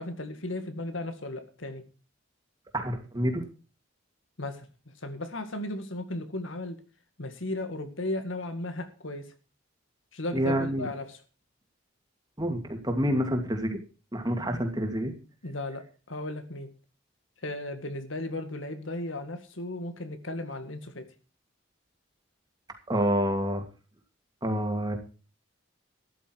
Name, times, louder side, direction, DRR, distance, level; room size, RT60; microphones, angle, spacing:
voice 1, 0.0-1.8 4.4-4.7 5.0-6.8 7.2-9.3 10.1-11.2 15.4-16.7 17.4-21.1, left 2 dB, 85° left, 8 dB, 2.0 m, -35 dB
voice 2, 2.7-3.5 10.3-10.9 12.4-13.8 14.1-15.1 22.9-23.6 24.4-25.0, equal, 20° right, 4 dB, 2.6 m, -28 dB
13.5 x 11.0 x 4.7 m, 0.35 s
head